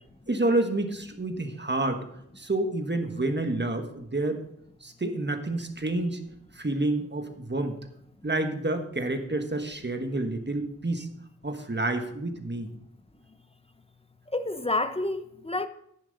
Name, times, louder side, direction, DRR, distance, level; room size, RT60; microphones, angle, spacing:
voice 1, 0.3-2.0 2.4-4.4 4.8-6.2 6.5-7.8 8.2-11.1 11.4-12.7, right 2 dB, 35° right, 1.4 m, -29 dB
voice 2, 14.3-15.7, left 2 dB, 20° left, 0.9 m, -29 dB
10.5 x 10.0 x 4.0 m
wide cardioid pair, 55°, 30 cm